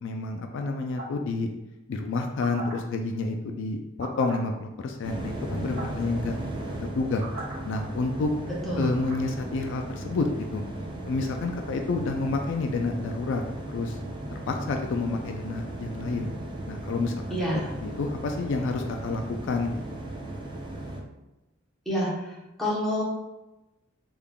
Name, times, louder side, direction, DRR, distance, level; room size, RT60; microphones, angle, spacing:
voice 1, 0.0-1.5 1.9-6.4 6.9-7.2 7.6-8.3 8.8-10.6 11.1-13.4 13.7-14.0 14.3-16.3 16.7-17.4 17.8-19.8, left 3 dB, 65° left, 4 dB, 0.3 m, -29 dB
sound 1, 1.0-1.2 2.2-2.7 4.0-4.4 5.4-5.5 5.7-6.0 6.9-7.5 8.8-9.2, right 2 dB, 50° right, 1.5 m, -40 dB
sound 2, 5.0-21.0, right 1 dB, 25° right, 0.5 m, -36 dB
voice 2, 17.3-17.7 21.9-23.0, equal, ahead, -7 dB, 1.0 m, -28 dB
3.6 x 3.4 x 2.3 m, 0.98 s
head